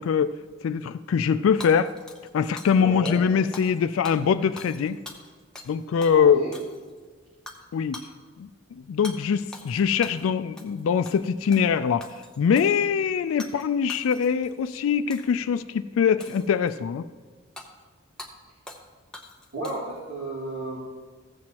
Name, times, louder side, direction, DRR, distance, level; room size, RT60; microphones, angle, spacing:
voice 1, 0.0-1.9 2.3-5.0 5.7-6.4 7.7-8.0 8.4-12.0 12.4-17.0, left 7 dB, 75° left, 11 dB, 0.3 m, -23 dB
Hammer / Shatter, 1.6-2.8 3.1-3.2 3.5-3.8 4.0-5.7 6.0-6.2 6.5-7.0 7.5-7.6 7.9-8.1 9.0-9.2 9.5-10.3 10.6-10.8 11.1-11.7 12.0-12.8 13.4-13.6 13.9-14.5 15.1-15.4 16.2-16.8 17.6-17.7 18.2-18.3 18.7-18.9 19.1-20.0, left 1 dB, 5° left, 0.8 m, -43 dB
voice 2, 2.8-3.2 6.1-6.5 19.5-20.8, right 2 dB, 85° right, -8 dB, 2.1 m, -32 dB
14.5 x 7.8 x 2.9 m, 1.5 s
head